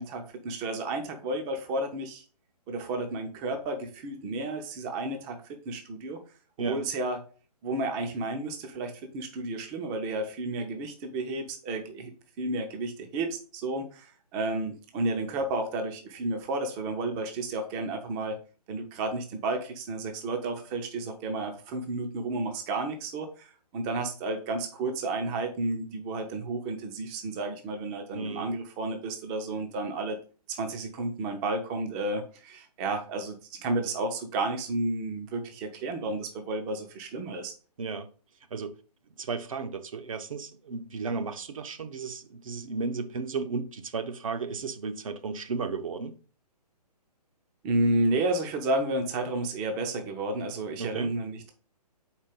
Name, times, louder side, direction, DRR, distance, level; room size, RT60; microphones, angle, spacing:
voice 1, 0.0-2.2 2.7-6.2 6.6-7.2 7.6-12.1 12.4-18.4 18.7-30.2 30.5-37.5 47.6-51.5, right 2 dB, 15° right, 0.5 m, -32 dB
voice 2, 28.1-28.5 37.8-38.1 38.5-38.7 39.2-46.1 50.8-51.1, right 4 dB, 55° right, 0.7 m, -34 dB
4.4 x 4.4 x 5.1 m
figure-of-eight pair, 135°, 21 cm